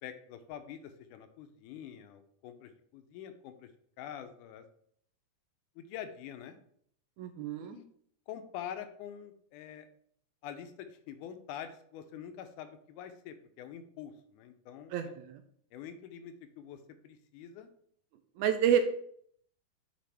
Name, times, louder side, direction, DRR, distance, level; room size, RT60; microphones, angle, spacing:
voice 1, 0.0-3.7 4.0-4.6 5.8-6.6 7.6-7.8 8.3-9.9 10.4-15.1 15.7-17.7, left 9 dB, 80° left, 9 dB, 2.0 m, -46 dB
voice 2, 7.2-7.8 14.9-15.4 18.4-18.8, right 9 dB, 80° right, 7 dB, 1.7 m, -29 dB
7.6 x 4.8 x 3.4 m, 0.64 s
omnidirectional pair, 3.8 m